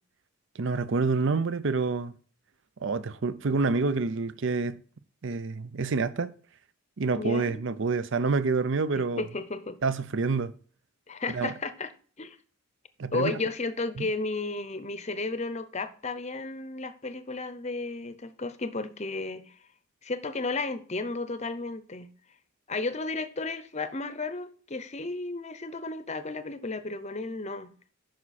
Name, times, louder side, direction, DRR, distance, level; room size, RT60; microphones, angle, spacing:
voice 1, 0.6-2.1 2.8-4.8 5.2-6.3 7.0-9.2 9.8-10.5 11.3-11.5 13.0-13.4 14.0-14.1, right 4 dB, 60° right, 0.6 m, -27 dB
voice 2, 7.2-7.6 9.2-9.8 11.1-11.9 12.2-12.4 13.1-19.5 20.0-22.1 22.7-27.7, left 3 dB, 30° left, 0.7 m, -33 dB
9.4 x 6.0 x 4.2 m
head